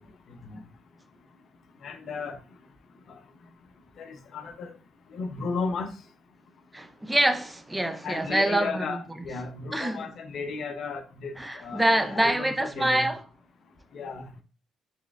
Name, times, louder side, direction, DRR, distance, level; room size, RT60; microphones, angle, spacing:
voice 1, 1.8-2.3 4.0-4.7 5.1-5.9 8.0-13.1 13.9-14.3, left 4 dB, 65° left, 0.6 m, -34 dB
voice 2, 6.7-9.0 9.7-10.1 11.4-13.2, right 1 dB, 10° right, 0.4 m, -25 dB
4.3 x 3.3 x 2.4 m
cardioid pair, 90°, 0 cm